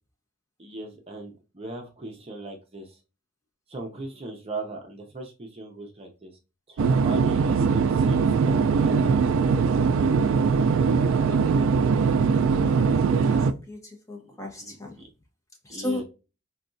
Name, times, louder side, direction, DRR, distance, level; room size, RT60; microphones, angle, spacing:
voice 1, 0.6-3.0 3.7-6.3 6.7-9.0 14.2-15.0 15.7-16.0, right 2 dB, 30° right, 0.6 m, -38 dB
sound 1, 6.8-13.5, right 5 dB, 75° right, 0.3 m, -21 dB
voice 2, 12.5-15.0 15.6-16.0, left 2 dB, 15° left, 0.8 m, -36 dB
4.0 x 2.3 x 2.5 m
head